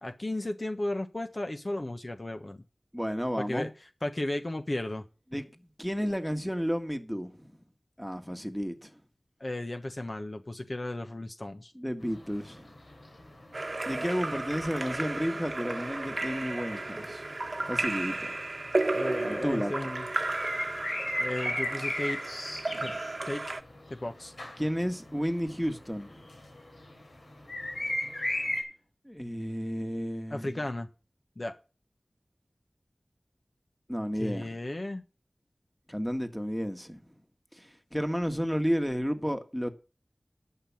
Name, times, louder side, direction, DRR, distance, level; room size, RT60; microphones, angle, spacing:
voice 1, 0.0-2.6 3.4-3.7 4.0-5.0 9.4-11.7 18.9-20.1 21.2-22.2 22.8-22.9 23.2-23.4 23.9-24.3 30.3-30.9 31.4-31.6 34.2-35.0, left 1 dB, 45° left, 1.2 m, -34 dB
voice 2, 2.9-3.7 5.3-5.5 5.8-7.5 8.0-9.0 11.8-12.7 13.9-17.2 17.7-18.3 19.2-19.7 22.7-22.9 24.6-26.2 29.1-30.6 33.9-34.6 35.9-37.0 37.5-39.7, equal, 5° left, 1.8 m, -32 dB
sound 1, 12.0-27.0 27.3-28.6, left 1 dB, 80° left, 4.2 m, -36 dB
Splash splatter / Drip / Trickle dribble, 13.5-23.6, right 2 dB, 60° right, 1.1 m, -33 dB
11.0 x 5.9 x 7.2 m
wide cardioid pair, 40°, 0 cm